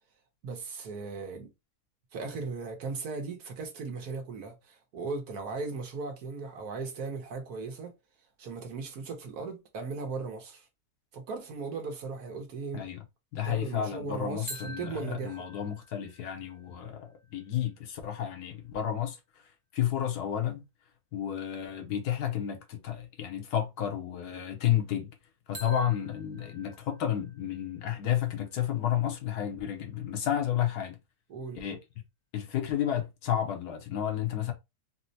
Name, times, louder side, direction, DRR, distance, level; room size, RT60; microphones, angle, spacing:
voice 1, 0.4-1.5 2.1-7.9 8.4-10.7 11.1-12.8 13.4-15.5 31.3-31.6, right 4 dB, 70° right, 1.4 m, -37 dB
voice 2, 13.3-19.2 19.7-20.6 21.1-25.1 25.5-31.0 31.5-31.8 32.3-34.5, left 10 dB, 75° left, 1.3 m, -31 dB
sound 1, 14.5-18.3 25.5-29.4, right 1 dB, 45° right, 0.7 m, -49 dB
4.2 x 2.1 x 2.7 m
omnidirectional pair, 1.7 m